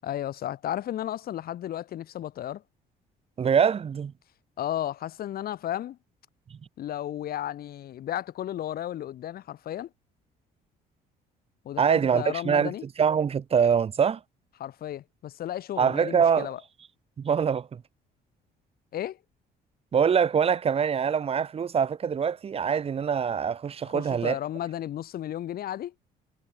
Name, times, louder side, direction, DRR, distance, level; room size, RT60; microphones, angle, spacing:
voice 1, 0.0-2.6 4.6-6.0 6.8-9.9 11.6-12.8 14.6-16.6 18.9-19.2 23.8-25.9, left 12 dB, 65° left, 7.7 m, -33 dB
voice 2, 3.4-4.1 6.5-6.6 11.8-12.7 13.0-14.2 15.8-16.5 17.2-17.8 19.9-24.4, right 7 dB, 35° right, 1.4 m, -24 dB
cardioid pair, 110°, 17 cm